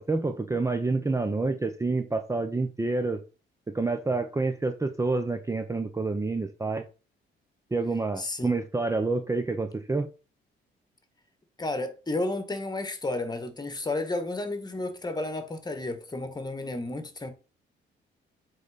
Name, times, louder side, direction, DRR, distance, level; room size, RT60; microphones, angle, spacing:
voice 1, 0.0-3.2 3.7-6.8 7.7-10.1, right 3 dB, 15° right, 0.8 m, -28 dB
voice 2, 8.2-8.5 11.6-17.3, left 2 dB, 20° left, 1.7 m, -32 dB
7.9 x 4.0 x 5.1 m
cardioid pair, 90°, 20 cm